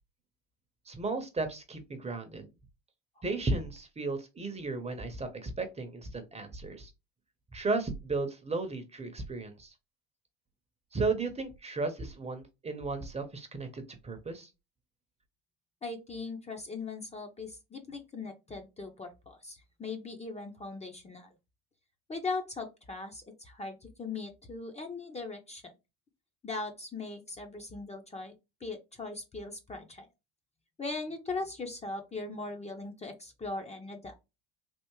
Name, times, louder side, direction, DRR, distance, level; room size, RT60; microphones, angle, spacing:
voice 1, 0.9-2.5 3.2-6.9 7.5-9.7 10.9-14.5, right 3 dB, 20° right, 7 dB, 0.8 m, -34 dB
voice 2, 15.8-21.3 22.1-25.7 26.4-28.3 28.6-30.1 30.8-34.1, left 3 dB, 20° left, 4 dB, 0.7 m, -39 dB
3.5 x 2.5 x 3.0 m, 0.25 s
hypercardioid pair, 85°, 35 cm